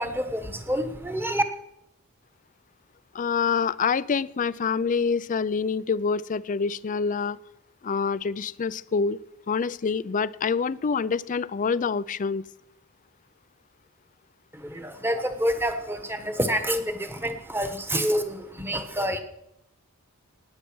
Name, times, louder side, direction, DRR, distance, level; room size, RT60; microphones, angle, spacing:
voice 1, 0.0-1.4 14.5-19.2, equal, 10° right, 8 dB, 1.3 m, -27 dB
voice 2, 3.1-7.4 7.8-9.2 9.5-12.4, left 5 dB, 35° left, 18 dB, 0.4 m, -26 dB
17.0 x 9.7 x 6.2 m, 0.82 s
head